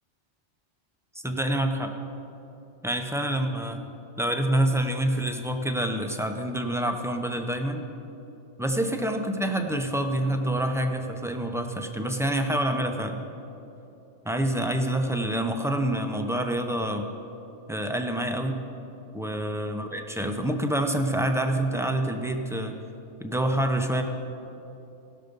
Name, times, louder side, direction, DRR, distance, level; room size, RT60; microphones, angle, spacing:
voice 1, 1.2-2.0 2.8-3.8 4.2-7.9 8.6-13.2 14.2-17.1 17.7-18.6 19.1-22.8 23.2-24.0, right 1 dB, 5° right, 4 dB, 0.4 m, -27 dB
18.0 x 6.6 x 5.2 m, 2.9 s
omnidirectional pair, 1.2 m